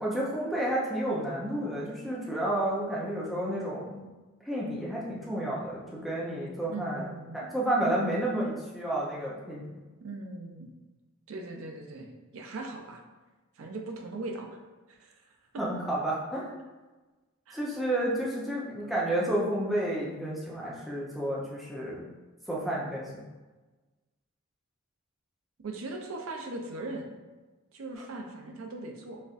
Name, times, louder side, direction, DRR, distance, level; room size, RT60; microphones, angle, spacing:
voice 1, 0.0-4.0 4.5-7.1 7.3-9.6 15.6-16.6 17.5-22.1 22.5-23.2, right 1 dB, ahead, -6 dB, 0.6 m, -31 dB
voice 2, 6.7-7.5 10.0-10.7 11.3-13.0 13.6-14.6 14.9-15.2 15.5-15.6 17.5-17.8 25.6-27.1 27.7-29.2, right 2 dB, 80° right, 2 dB, 0.5 m, -39 dB
4.2 x 2.5 x 2.4 m, 1.2 s
head